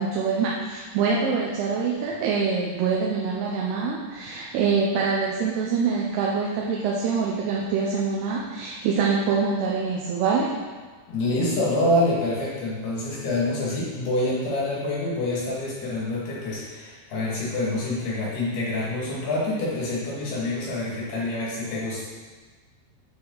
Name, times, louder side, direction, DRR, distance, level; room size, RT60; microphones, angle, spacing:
voice 1, 0.0-10.5, right 5 dB, 85° right, -3 dB, 2.8 m, -25 dB
voice 2, 11.1-22.1, left 1 dB, 75° left, -6 dB, 4.3 m, -26 dB
8.9 x 6.9 x 4.0 m, 1.4 s
omnidirectional pair, 4.6 m